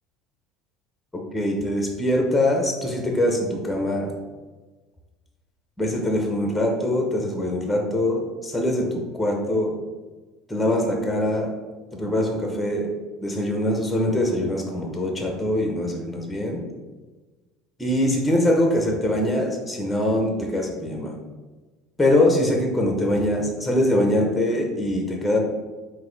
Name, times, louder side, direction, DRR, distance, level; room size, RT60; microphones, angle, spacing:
voice 1, 1.1-4.1 5.8-9.8 10.5-11.5 11.9-12.9 13.2-16.6 17.8-21.1 22.0-25.4, left 1 dB, 10° left, 1 dB, 0.7 m, -23 dB
4.0 x 2.6 x 3.8 m, 1.3 s
supercardioid pair, 120°, 0 cm